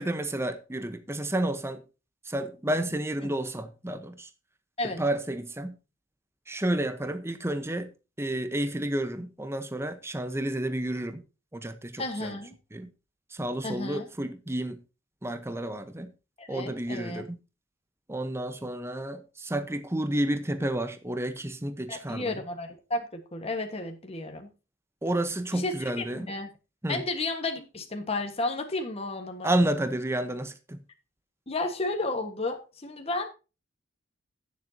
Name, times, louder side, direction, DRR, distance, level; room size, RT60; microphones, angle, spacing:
voice 1, 0.0-1.8 2.3-4.3 5.0-5.8 6.5-7.9 8.2-11.2 11.5-12.3 12.7-12.9 13.3-14.8 15.2-16.1 16.5-17.4 18.1-22.4 25.0-26.3 26.8-27.0 29.4-30.8, right 1 dB, 15° right, 0.9 m, -30 dB
voice 2, 12.0-12.5 13.6-14.1 16.4-17.2 21.9-24.5 25.5-26.5 26.9-29.5 31.5-33.3, left 2 dB, 30° left, 1.4 m, -32 dB
16.5 x 7.4 x 2.8 m
head